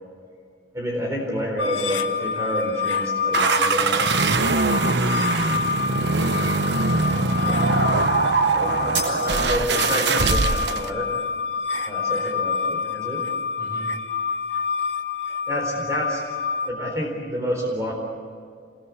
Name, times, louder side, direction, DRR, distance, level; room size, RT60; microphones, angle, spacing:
voice 1, 0.7-4.1 7.4-7.9 8.5-11.1 11.8-13.2 15.5-16.2 16.7-17.9, equal, 15° right, -1 dB, 4.1 m, -29 dB
sound 1, 1.6-16.7, left 5 dB, 80° left, 1.6 m, -27 dB
sound 2, 3.3-10.9, right 3 dB, 65° right, 1.0 m, -22 dB
voice 2, 4.6-5.5 13.6-13.9, equal, 15° left, -2 dB, 6.7 m, -41 dB
sound 3, 8.9-10.0, right 4 dB, 80° right, 7.2 m, -31 dB
27.5 x 21.5 x 8.4 m, 2.2 s
head